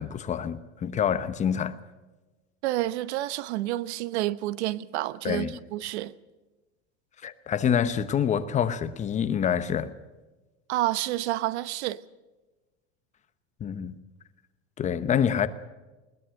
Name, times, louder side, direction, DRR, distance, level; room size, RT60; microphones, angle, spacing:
voice 1, 0.0-1.8 5.2-5.6 7.2-9.9 13.6-14.0 14.8-15.5, left 8 dB, 20° left, 0.9 m, -26 dB
voice 2, 2.6-6.1 10.7-12.0, right 16 dB, 75° right, 1.0 m, -29 dB
21.0 x 19.5 x 6.5 m
supercardioid pair, 155°, 34 cm